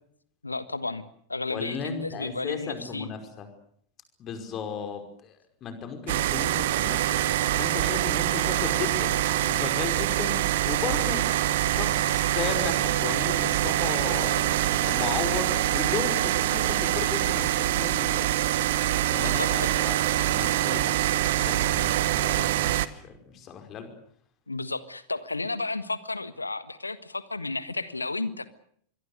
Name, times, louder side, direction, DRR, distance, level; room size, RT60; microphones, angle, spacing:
voice 1, 0.4-1.0 1.3-3.1 19.1-19.7 24.5-28.5, left 3 dB, 80° left, 15 dB, 1.5 m, -32 dB
voice 2, 1.5-3.5 4.2-7.2 7.6-9.1 9.5-10.4 10.6-11.2 11.7-14.5 14.8-18.3 19.1-20.0 20.3-20.9 21.4-23.9, left 6 dB, 30° left, 7 dB, 5.4 m, -35 dB
sound 1, 6.1-22.9, right 13 dB, 55° right, 1.1 m, -25 dB
26.0 x 22.5 x 6.6 m, 0.64 s
figure-of-eight pair, 90°, 0 cm